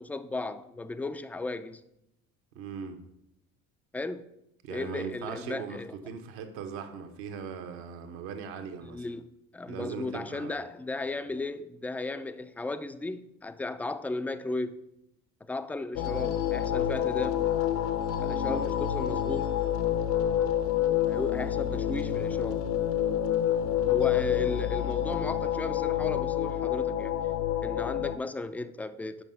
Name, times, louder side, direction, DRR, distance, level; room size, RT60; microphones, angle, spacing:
voice 1, 0.0-1.8 3.9-4.3 4.7-5.9 8.8-9.3 9.5-14.8 15.5-17.5 18.2-19.5 21.1-22.7 23.9-27.2 27.6-29.2, left 2 dB, 5° left, 0.3 m, -35 dB
voice 2, 2.5-3.0 4.6-9.0 9.7-10.5 18.4-18.7, right 6 dB, 70° right, 1.1 m, -39 dB
sound 1, 15.9-28.2, left 10 dB, 65° left, 0.8 m, -28 dB
6.2 x 5.4 x 5.3 m
hypercardioid pair, 60°, 41 cm